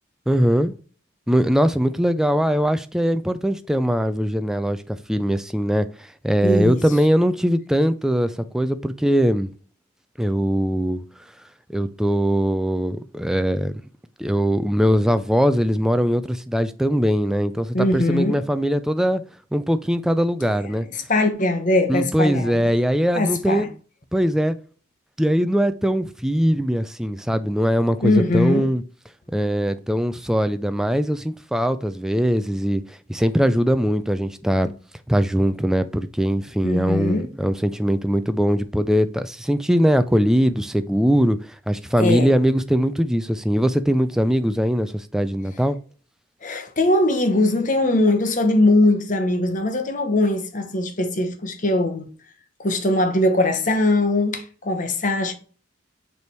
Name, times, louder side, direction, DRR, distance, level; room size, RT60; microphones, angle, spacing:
voice 1, 0.3-0.7 1.3-9.5 10.2-11.0 11.7-13.8 14.2-19.2 19.5-20.9 21.9-23.7 24.1-24.6 25.2-28.8 29.3-34.7 35.1-41.4 41.7-45.8, equal, 5° right, 0.3 m, -21 dB
voice 2, 6.4-6.8 17.7-18.4 20.4-20.8 21.1-22.7 23.1-23.7 28.0-28.7 36.6-37.3 42.0-42.3 46.4-52.1 52.6-55.3, left 2 dB, 40° left, 1.0 m, -21 dB
6.8 x 3.4 x 4.6 m
head